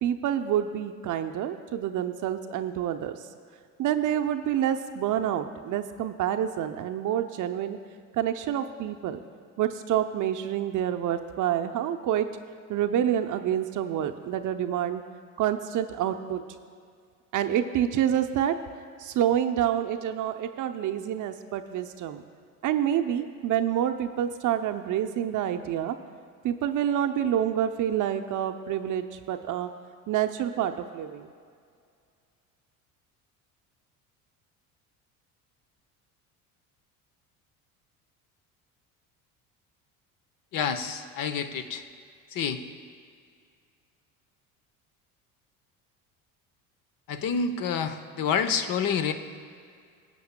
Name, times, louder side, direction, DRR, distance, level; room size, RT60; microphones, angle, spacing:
voice 1, 0.0-3.2 3.8-7.8 8.1-9.2 9.6-12.3 12.7-15.0 15.4-16.4 17.3-18.5 19.0-22.2 22.6-26.0 26.4-29.7 30.1-31.3, right 10 dB, 45° right, 7 dB, 0.6 m, -27 dB
voice 2, 40.5-41.8 42.3-42.6 47.1-49.1, left 6 dB, 50° left, 9 dB, 0.8 m, -28 dB
19.0 x 8.3 x 2.2 m, 2.2 s
hypercardioid pair, 65°, 42 cm